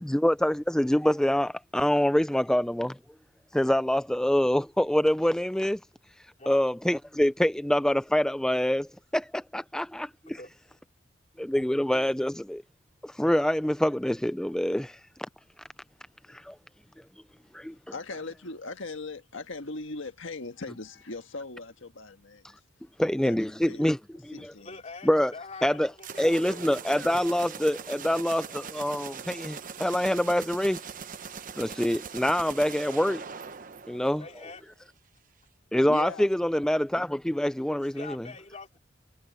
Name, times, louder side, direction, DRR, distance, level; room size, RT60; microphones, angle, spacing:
voice 1, 0.0-3.0 3.5-5.8 6.5-10.4 11.4-12.6 13.0-15.0 16.3-16.5 17.5-17.7 23.0-24.0 24.3-24.5 25.1-25.3 25.6-25.9 26.2-30.8 31.6-33.3 33.9-34.2 35.7-38.2, equal, 5° left, 0.3 m, -25 dB
voice 2, 17.7-22.5 23.1-23.4 23.6-23.8 24.3-24.8 35.9-36.3, left 3 dB, 80° left, 1.6 m, -39 dB
voice 3, 24.6-26.7 34.2-34.6 37.8-38.8, left 3 dB, 35° left, 3.3 m, -44 dB
sound 1, 26.0-34.6, right 6 dB, 45° right, 0.8 m, -41 dB
head